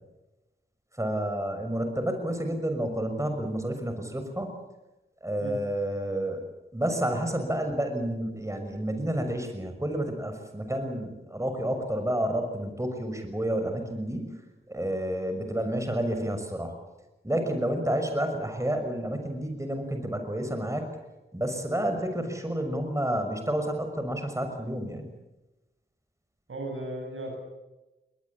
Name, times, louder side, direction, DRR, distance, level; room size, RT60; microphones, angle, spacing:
voice 1, 1.0-4.6 5.2-6.4 6.7-14.3 14.7-16.8 17.2-20.9 21.3-25.1, right 1 dB, 15° right, 6 dB, 6.1 m, -30 dB
voice 2, 26.5-27.4, right 1 dB, 75° right, 3 dB, 7.9 m, -35 dB
22.0 x 19.5 x 8.7 m, 1.0 s
cardioid pair, 40°, 21 cm